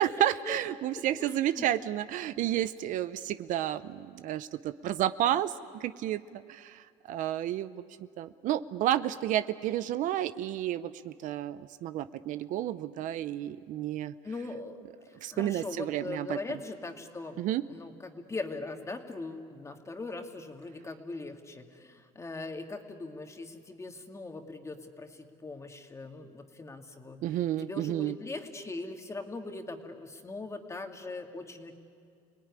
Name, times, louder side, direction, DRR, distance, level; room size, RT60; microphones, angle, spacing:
voice 1, 0.0-14.1 15.2-16.6 17.4-17.6 27.2-28.2, right 12 dB, 60° right, 13 dB, 0.7 m, -31 dB
voice 2, 0.9-1.7 14.2-14.8 15.1-17.4 17.7-27.2 27.6-31.7, left 3 dB, 20° left, 4 dB, 2.4 m, -40 dB
29.5 x 19.5 x 9.8 m, 2.3 s
supercardioid pair, 100°, 15 cm